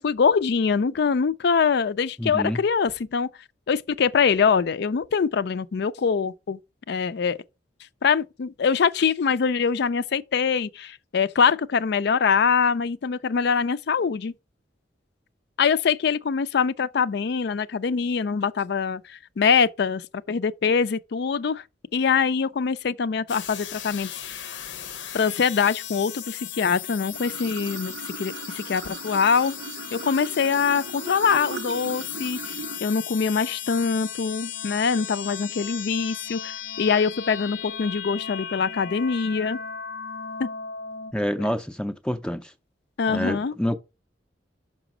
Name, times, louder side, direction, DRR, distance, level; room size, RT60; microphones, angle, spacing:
voice 1, 0.0-3.3 3.7-6.6 6.9-7.4 8.0-14.3 15.6-21.6 21.9-24.1 25.1-29.5 29.9-32.5 32.8-39.6 40.4-40.5 41.4-41.5 43.0-43.5, left 6 dB, 60° left, 0.4 m, -23 dB
voice 2, 2.2-2.6 41.1-42.5 43.1-43.8, equal, 5° left, 0.5 m, -27 dB
sound 1, 23.3-41.1, left 8 dB, 80° left, 0.7 m, -36 dB
Water / Sink (filling or washing), 27.1-32.8, right 5 dB, 70° right, 0.6 m, -38 dB
6.0 x 5.0 x 6.0 m
head